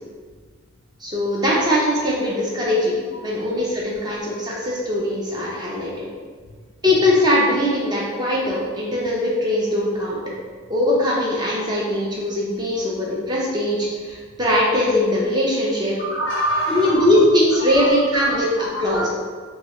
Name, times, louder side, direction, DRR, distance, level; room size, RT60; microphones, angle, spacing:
voice 1, 1.0-6.1 6.8-10.2 10.7-15.9 16.7-19.1, left 1 dB, 20° right, -4 dB, 0.5 m, -21 dB
voice 2, 16.0-17.1 17.6-18.4 18.7-19.2, right 1 dB, 60° left, -2 dB, 0.4 m, -26 dB
3.0 x 2.3 x 2.9 m, 1.6 s
head